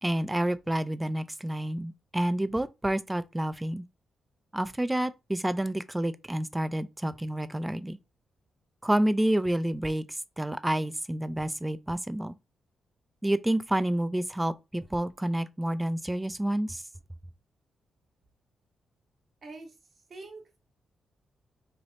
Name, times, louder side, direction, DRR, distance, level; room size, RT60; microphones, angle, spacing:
voice 1, 0.0-3.8 4.5-8.0 8.8-12.4 13.2-16.8, right 1 dB, 10° right, 0.3 m, -29 dB
voice 2, 19.4-19.7 20.1-20.6, right 3 dB, 60° right, 1.4 m, -44 dB
3.3 x 2.9 x 2.5 m
cardioid pair, 75°, 0 cm